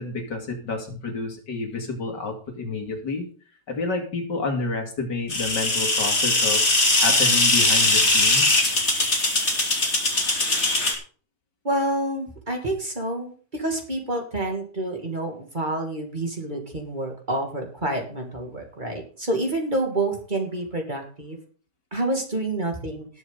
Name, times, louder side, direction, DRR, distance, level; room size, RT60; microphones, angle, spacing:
voice 1, 0.0-3.3 3.7-8.6, left 3 dB, 85° left, 3 dB, 3.1 m, -29 dB
sound 1, 5.3-10.9, left 2 dB, 40° left, 3.3 m, -20 dB
voice 2, 11.6-21.4 21.9-23.1, right 1 dB, 25° right, 2 dB, 2.6 m, -28 dB
19.0 x 7.2 x 4.0 m, 0.41 s
omnidirectional pair, 1.8 m